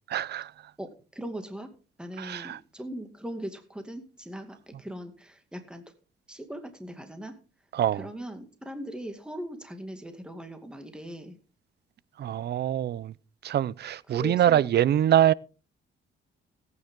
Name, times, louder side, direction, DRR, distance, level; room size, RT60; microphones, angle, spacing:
voice 1, 0.1-0.5 2.2-2.6 7.7-8.1 12.2-13.1 13.4-15.3, right 11 dB, 55° right, 0.5 m, -24 dB
voice 2, 0.8-1.7 2.0-5.8 6.3-7.4 7.9-11.4 14.1-14.7, equal, 5° right, 2.3 m, -40 dB
17.0 x 9.3 x 3.8 m
cardioid pair, 90°, 20 cm